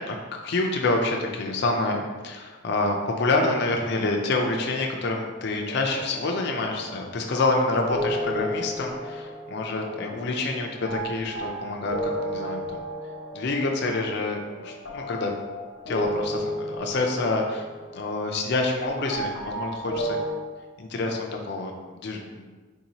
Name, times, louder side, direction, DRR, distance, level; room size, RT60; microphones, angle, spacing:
voice 1, 0.1-12.8 13.3-15.3 15.9-17.6 17.9-20.2 20.8-22.5, left 2 dB, 55° left, 1 dB, 0.4 m, -27 dB
sound 1, 5.6-20.3, equal, 75° left, 0.7 m, -34 dB
4.0 x 2.7 x 2.9 m, 1.3 s
head